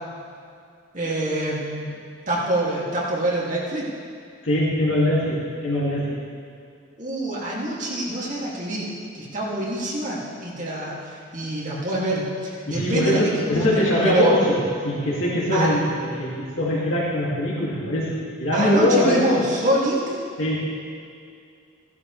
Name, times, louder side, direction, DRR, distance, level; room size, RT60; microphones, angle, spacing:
voice 1, 0.9-1.9 2.3-3.9 7.0-14.3 15.5-15.7 18.5-20.1, right 1 dB, 35° right, -6 dB, 2.3 m, -26 dB
voice 2, 4.4-6.2 12.7-19.3 20.4-20.7, left 1 dB, 70° left, -6 dB, 2.2 m, -22 dB
17.0 x 12.0 x 3.2 m, 2.3 s
head